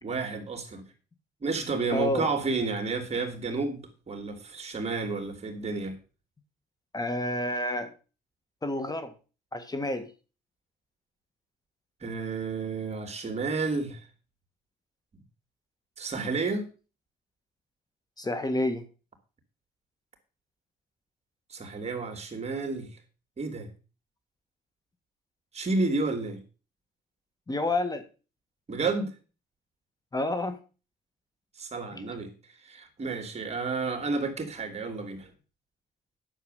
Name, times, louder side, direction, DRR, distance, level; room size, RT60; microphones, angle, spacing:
voice 1, 0.0-0.8 1.4-6.0 12.0-14.0 16.0-16.7 21.5-22.9 23.4-23.7 25.5-26.4 28.7-29.1 31.6-32.3 32.6-35.3, right 3 dB, 40° right, 6 dB, 3.1 m, -31 dB
voice 2, 1.9-2.3 6.9-7.9 8.6-9.1 9.5-10.1 18.2-18.8 27.5-28.0 30.1-30.6, left 1 dB, 20° left, 9 dB, 1.8 m, -29 dB
10.0 x 7.2 x 6.7 m, 0.35 s
cardioid pair, 90°, 18 cm